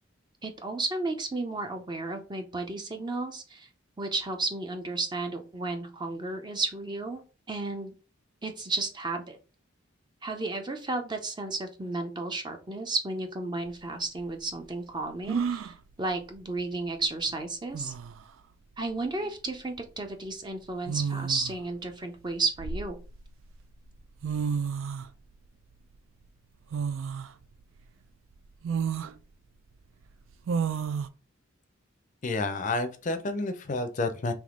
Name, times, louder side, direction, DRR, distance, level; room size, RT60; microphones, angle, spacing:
voice 1, 0.4-3.7 4.0-7.2 7.5-8.0 8.4-9.4 10.2-17.9 18.8-23.0, right 3 dB, 20° right, 5 dB, 0.5 m, -33 dB
sound 1, 13.7-13.8 15.3-15.8 17.3-17.4 17.7-18.2 19.5-19.8 20.8-21.6 22.3-23.3 24.0-24.1 24.2-25.1 26.7-27.3 27.8-27.9 28.6-29.1 30.5-31.1, right 6 dB, 75° right, 0.4 m, -31 dB
voice 2, 32.2-34.3, left 2 dB, 40° left, 10 dB, 0.5 m, -30 dB
3.5 x 3.1 x 3.6 m, 0.34 s
head